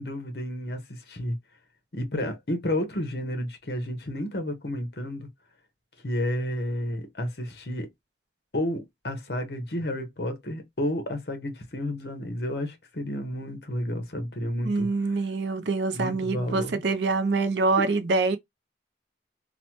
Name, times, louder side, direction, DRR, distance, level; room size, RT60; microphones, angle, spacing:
voice 1, 0.0-1.4 1.9-5.3 6.0-7.9 8.5-14.9 15.9-16.8, left 1 dB, 70° left, 0.9 m, -31 dB
voice 2, 14.6-18.4, right 3 dB, 85° right, 0.5 m, -25 dB
3.0 x 2.1 x 2.9 m
head